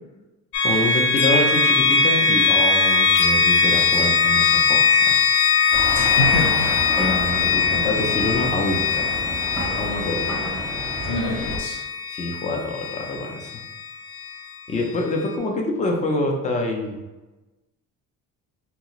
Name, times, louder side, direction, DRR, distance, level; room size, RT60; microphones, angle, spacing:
sound 1, 0.5-14.3, left 5 dB, 90° left, 0.7 m, -21 dB
voice 1, 0.6-5.2 7.0-9.1 9.7-10.3 12.1-13.5 14.7-17.0, left 2 dB, 20° left, 1 dB, 0.5 m, -26 dB
sound 2, 5.7-11.6, right 1 dB, 5° left, 0.9 m, -30 dB
voice 2, 5.9-6.7 11.0-11.8, left 1 dB, 60° left, 0 dB, 1.0 m, -26 dB
3.5 x 2.4 x 3.0 m, 1.1 s
cardioid pair, 140°, 33 cm